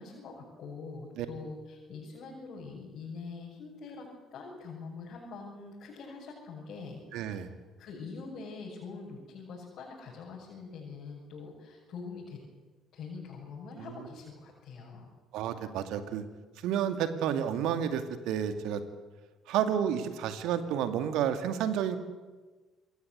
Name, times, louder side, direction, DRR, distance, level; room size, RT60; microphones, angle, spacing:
voice 1, 0.0-7.4 7.8-12.4 12.9-15.1, left 4 dB, 55° left, -3 dB, 7.1 m, -44 dB
voice 2, 7.1-7.5 13.8-13.9 15.3-16.2 16.6-18.8 19.5-22.0, right 9 dB, 65° right, 9 dB, 2.3 m, -30 dB
27.5 x 21.5 x 8.3 m, 1.3 s
figure-of-eight pair, 50°, 0 cm